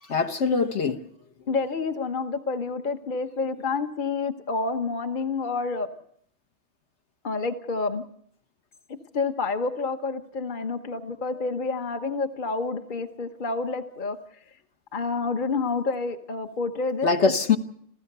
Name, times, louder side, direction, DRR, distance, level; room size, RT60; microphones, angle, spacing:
voice 1, 0.0-1.0 17.0-17.6, left 5 dB, 60° left, 1.6 m, -23 dB
voice 2, 1.5-5.9 7.2-8.0 8.9-14.2 14.9-17.1, left 4 dB, 40° left, 1.2 m, -29 dB
27.5 x 16.0 x 6.7 m
omnidirectional pair, 1.3 m